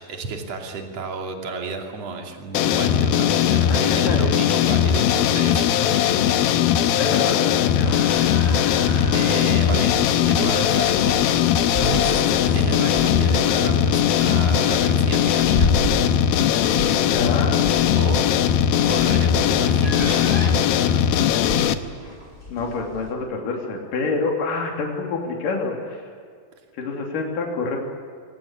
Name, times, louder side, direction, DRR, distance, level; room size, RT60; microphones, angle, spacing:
voice 1, 0.0-6.4 9.1-11.5 12.5-15.9 16.8-17.1 18.0-18.2 18.8-19.3 19.6-21.0, right 4 dB, 45° right, 3 dB, 3.6 m, -32 dB
sound 1, 2.5-21.7, left 9 dB, 80° left, 2.8 m, -19 dB
voice 2, 3.7-4.2 7.0-8.1 17.1-17.6 22.5-26.0 26.8-27.8, left 4 dB, 65° left, 1 dB, 4.6 m, -27 dB
sound 2, 7.8-23.1, left 1 dB, 15° left, 4.9 m, -32 dB
25.0 x 18.0 x 9.9 m, 2.2 s
omnidirectional pair, 4.2 m